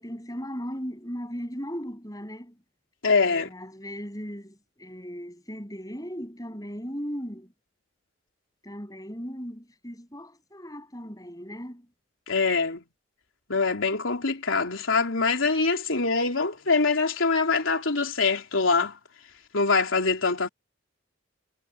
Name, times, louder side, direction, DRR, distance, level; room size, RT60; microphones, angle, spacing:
voice 1, 0.0-2.6 3.2-7.5 8.6-11.9, equal, 20° left, 8.0 m, -37 dB
voice 2, 3.0-3.5 12.3-12.8 13.5-18.9 19.5-20.5, left 4 dB, 85° left, 3.5 m, -24 dB
head